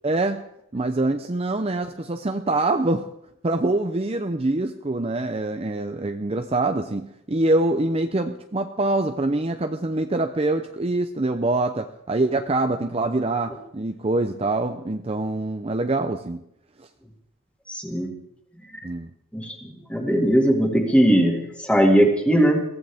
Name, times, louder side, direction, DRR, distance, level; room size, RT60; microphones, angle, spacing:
voice 1, 0.0-0.4 0.7-3.1 3.4-16.4 16.8-16.9 18.8-19.1, right 2 dB, 25° right, 6 dB, 0.6 m, -24 dB
voice 2, 17.7-18.1 19.3-19.6 19.9-22.6, equal, 5° left, 1 dB, 2.2 m, -19 dB
22.0 x 15.5 x 3.6 m, 0.77 s
head